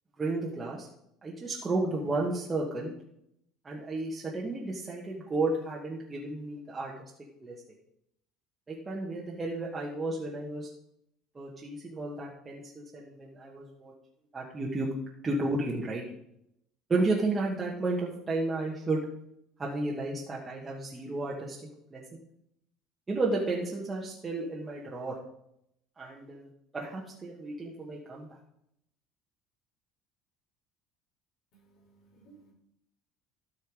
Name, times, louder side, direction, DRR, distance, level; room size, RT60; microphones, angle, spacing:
voice 1, 0.2-0.9 1.2-2.9 3.6-6.9 7.4-7.6 8.7-10.7 11.3-13.9 14.3-14.9 15.2-16.0 16.9-19.0 19.6-21.6 21.9-22.0 23.1-25.2 26.0-28.3, right 2 dB, 15° right, -4 dB, 1.4 m, -32 dB
voice 2, 31.5-32.5, right 4 dB, 55° left, 0 dB, 4.1 m, -59 dB
13.0 x 5.6 x 4.9 m, 0.77 s
cardioid pair, 150°, 0 cm